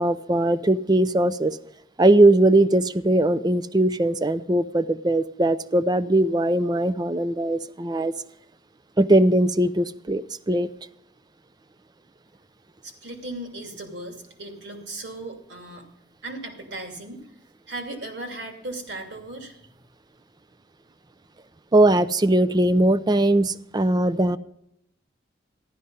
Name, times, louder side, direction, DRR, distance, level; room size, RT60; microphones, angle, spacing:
voice 1, 0.0-1.6 2.0-8.1 9.0-10.7 21.7-24.4, right 1 dB, 20° right, 15 dB, 0.5 m, -20 dB
voice 2, 12.8-15.9 16.2-17.2 17.7-19.5, right 2 dB, 65° right, 3 dB, 2.7 m, -37 dB
14.5 x 12.0 x 5.5 m, 0.77 s
head